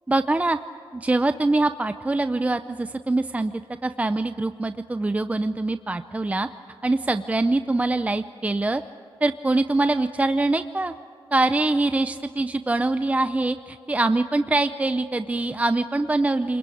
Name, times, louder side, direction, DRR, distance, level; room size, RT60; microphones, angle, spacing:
voice 1, 0.1-0.6 0.9-3.5 3.8-6.5 6.8-8.8 9.2-10.9 11.3-16.6, right 2 dB, 15° right, 10 dB, 0.6 m, -23 dB
29.5 x 22.0 x 8.5 m, 2.6 s
wide cardioid pair, 155°, 9 cm